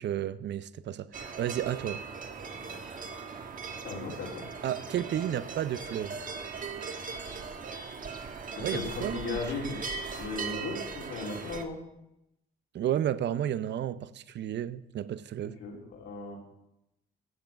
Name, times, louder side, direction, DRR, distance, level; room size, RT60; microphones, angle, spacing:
voice 1, 0.0-2.0 4.6-6.2 8.6-9.4 12.7-15.5, right 10 dB, 60° right, 0.6 m, -32 dB
sound 1, 1.1-11.6, right 5 dB, 45° right, 1.4 m, -39 dB
voice 2, 3.8-4.4 8.6-9.8 10.2-11.8 15.6-16.4, left 4 dB, 85° left, 3.5 m, -36 dB
15.5 x 7.0 x 5.9 m
cardioid pair, 90°, 20 cm